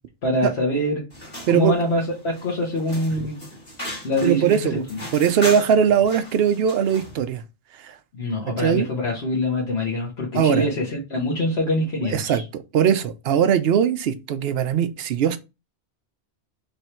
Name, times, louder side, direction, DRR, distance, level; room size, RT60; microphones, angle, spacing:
voice 1, 0.2-1.0 1.5-3.4 4.0-5.0 8.1-12.4, left 1 dB, 65° left, 1.4 m, -24 dB
sound 1, 1.1-7.2, equal, 35° left, 2.0 m, -37 dB
voice 2, 4.2-4.8 5.1-7.4 7.8-7.9 8.6-8.9 10.3-10.7 12.1-12.4 12.7-15.4, right 8 dB, 65° right, 0.8 m, -20 dB
3.5 x 3.3 x 4.3 m
omnidirectional pair, 1.2 m